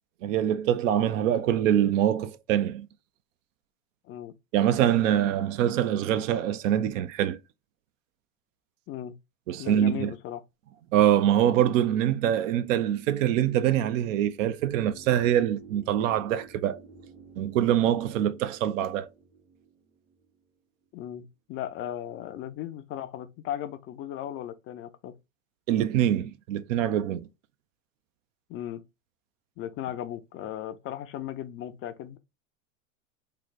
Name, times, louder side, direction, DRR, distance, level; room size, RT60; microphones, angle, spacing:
voice 1, 0.2-2.9 4.5-7.4 9.5-10.1 10.9-16.8 17.4-19.1 25.7-27.3, right 11 dB, 70° right, 0.6 m, -24 dB
voice 2, 9.6-10.4 20.9-25.1 28.5-28.8 29.6-32.2, left 11 dB, 30° left, 0.4 m, -36 dB
sound 1, 14.6-20.6 20.8-20.9, right 4 dB, 90° right, 1.6 m, -51 dB
3.3 x 2.1 x 3.8 m
hypercardioid pair, 105°, 40 cm